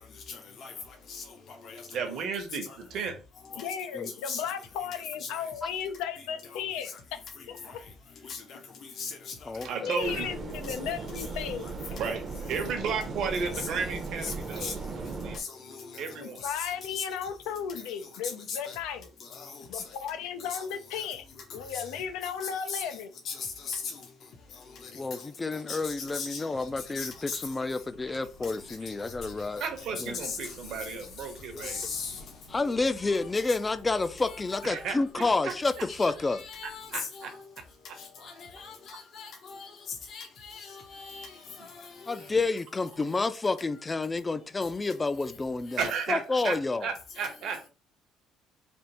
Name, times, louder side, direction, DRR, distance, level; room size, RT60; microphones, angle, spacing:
voice 1, 0.3-0.7 1.1-1.2 1.6-1.8 2.7-2.8 3.5-3.7 4.3-4.4 5.2-5.3 7.6-7.7 8.3-8.6 9.0-9.3 11.2-11.4 13.5-13.7 14.2-14.3 14.6-14.7 15.3-16.0 16.6-16.7 16.9-17.0 18.5-18.8 19.3-19.8 20.5-20.6 21.0-21.1 21.7-21.8 22.7-22.8 23.2-23.8 25.7-26.5 26.9-27.4 30.0-30.4 31.6-32.2 34.3-34.6 36.0-37.3 38.2-39.7 40.1-41.3 41.7-41.9 47.2-47.3, left 5 dB, 50° left, 0.7 m, -38 dB
voice 2, 1.9-3.2 5.8-5.9 9.6-10.3 11.8-12.2 12.5-15.4 16.0-16.4 29.6-31.9 34.6-35.5 36.9-37.3 37.6-38.0 42.2-42.3 45.8-47.7, right 5 dB, 60° right, 0.9 m, -34 dB
voice 3, 3.6-6.9 7.5-7.6 9.8-11.8 16.2-19.1 19.7-21.2 21.5-23.1, left 8 dB, 90° left, 0.6 m, -35 dB
voice 4, 9.5-9.9 24.9-29.6 30.0-30.2 31.5-31.7 32.5-36.4 42.1-45.8 46.1-46.9, left 3 dB, 20° left, 0.3 m, -29 dB
sound 1, 10.0-15.4, right 4 dB, 30° right, 0.6 m, -37 dB
sound 2, 26.6-36.9, left 3 dB, 70° left, 1.1 m, -54 dB
3.5 x 2.5 x 4.1 m
cardioid pair, 120°, 0 cm